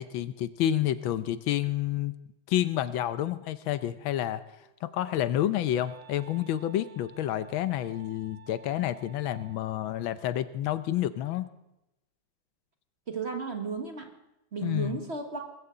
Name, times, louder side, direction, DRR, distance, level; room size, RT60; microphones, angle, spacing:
voice 1, 0.0-2.1 2.5-4.4 4.8-11.5 14.6-15.0, left 12 dB, 80° left, 13 dB, 1.5 m, -29 dB
Wind instrument woodwind instrument, 4.6-9.9, right 8 dB, 65° right, 1.3 m, -54 dB
voice 2, 13.1-14.1 14.5-15.5, right 4 dB, 35° right, 5 dB, 1.4 m, -34 dB
20.0 x 15.5 x 3.8 m, 0.88 s
omnidirectional pair, 2.2 m